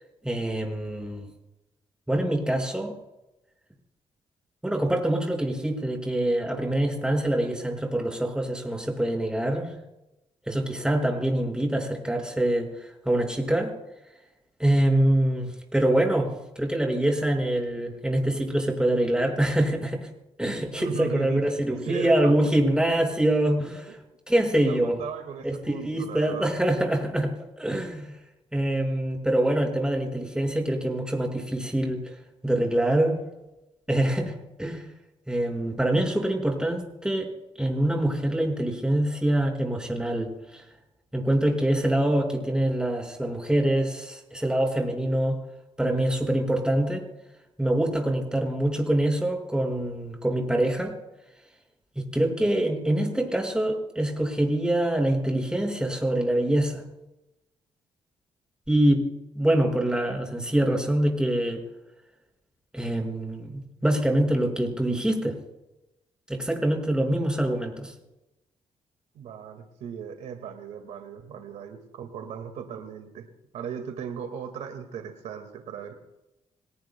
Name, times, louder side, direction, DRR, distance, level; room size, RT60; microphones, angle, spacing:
voice 1, 0.2-1.3 2.1-3.0 4.6-9.7 10.5-13.7 14.6-16.3 16.6-20.1 20.4-24.0 24.3-25.0 25.4-27.3 27.6-28.1 28.5-32.1 32.4-33.2 33.9-34.8 35.3-37.3 37.6-40.6 41.1-45.4 45.8-47.0 47.6-50.9 52.0-56.8 58.7-59.1 59.4-61.6 62.7-65.4 66.3-67.9, right 1 dB, 5° right, 2 dB, 5.3 m, -25 dB
voice 2, 20.8-21.4 21.7-22.3 24.5-26.5 69.1-73.3 73.5-76.0, right 7 dB, 85° right, 5 dB, 1.9 m, -37 dB
26.5 x 18.5 x 2.2 m, 0.94 s
cardioid pair, 65°, 12 cm